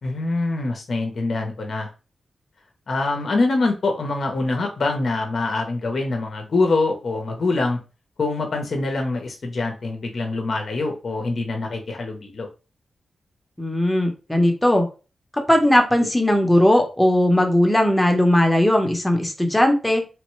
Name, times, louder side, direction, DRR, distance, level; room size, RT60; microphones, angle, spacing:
voice 1, 0.0-1.9 2.9-7.8 8.2-12.5, left 3 dB, 60° left, 3 dB, 0.6 m, -24 dB
voice 2, 13.6-14.8 15.3-20.0, left 1 dB, 10° left, 3 dB, 0.9 m, -18 dB
3.1 x 2.1 x 3.1 m, 0.32 s
cardioid pair, 70°, 0 cm